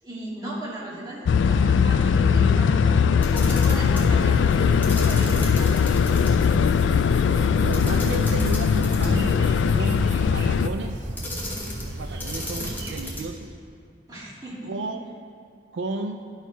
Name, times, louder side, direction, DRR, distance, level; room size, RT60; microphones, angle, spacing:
voice 1, 0.0-6.0 14.1-14.7, right 1 dB, 20° right, -8 dB, 2.1 m, -36 dB
sound 1, 1.3-10.7, left 6 dB, 90° left, 0.3 m, -20 dB
Camera, 3.1-4.1 4.8-6.3 6.6-6.7 7.7-9.3 11.2-11.9 12.2-13.4, left 1 dB, 10° left, 1.2 m, -35 dB
sound 2, 3.8-13.1, right 1 dB, 65° right, 0.8 m, -35 dB
voice 2, 7.6-11.1 11.8-13.5 14.7-15.0 15.7-16.2, right 3 dB, 90° right, 6 dB, 0.4 m, -33 dB
11.5 x 4.5 x 4.6 m, 2.2 s
head